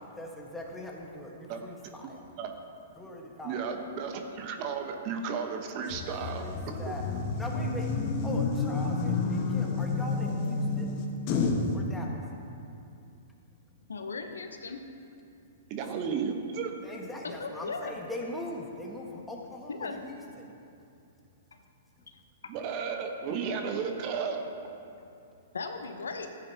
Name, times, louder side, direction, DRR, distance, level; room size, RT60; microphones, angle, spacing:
voice 1, 0.0-2.2 3.0-3.5 6.3-7.9 8.2-10.9 11.7-12.2 16.8-20.5, left 1 dB, 5° left, -1 dB, 1.4 m, -41 dB
voice 2, 3.4-6.5 6.9-7.0 15.7-16.8 22.5-24.4, right 6 dB, 40° right, 4 dB, 1.0 m, -33 dB
sound 1, 5.9-11.7, left 4 dB, 40° left, 1.2 m, -30 dB
voice 3, 13.9-14.8 17.2-18.0 19.7-20.0 21.5-21.6 22.4-22.6 25.5-26.3, left 4 dB, 80° left, 6 dB, 0.8 m, -37 dB
14.0 x 9.0 x 2.9 m, 2.6 s
hypercardioid pair, 115°, 0 cm